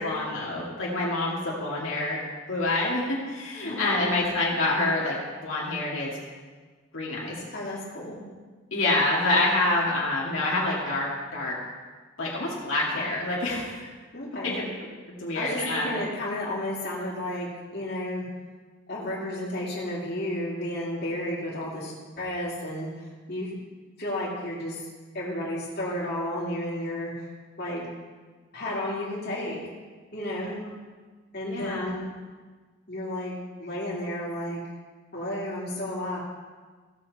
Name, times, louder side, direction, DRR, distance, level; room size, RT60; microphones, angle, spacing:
voice 1, 0.0-2.2 2.5-5.2 5.4-6.1 6.9-7.4 8.7-11.6 12.2-13.9 14.4-14.6 15.2-16.0 31.5-31.9, left 2 dB, 75° left, -5 dB, 2.3 m, -27 dB
voice 2, 3.6-4.1 7.5-8.2 14.1-14.6 15.3-18.2 18.9-22.9 23.3-23.5 24.0-24.8 25.1-27.3 27.6-27.9 28.5-29.6 30.1-30.6 31.3-32.1 32.9-34.6 35.1-36.2, left 1 dB, 50° left, -6 dB, 2.7 m, -32 dB
16.0 x 6.9 x 4.2 m, 1.4 s
head